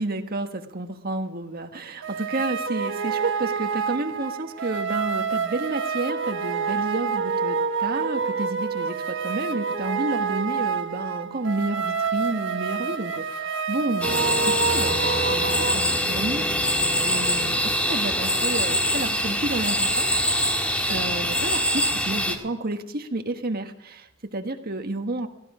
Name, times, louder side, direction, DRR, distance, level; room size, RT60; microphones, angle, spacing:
voice 1, 0.0-20.1 20.9-25.3, right 2 dB, 45° right, 5 dB, 1.5 m, -31 dB
sound 1, 2.0-15.7, right 5 dB, 65° right, 1.2 m, -27 dB
sound 2, 14.0-22.4, equal, 5° left, 1.8 m, -24 dB
18.0 x 14.5 x 5.0 m, 0.90 s
head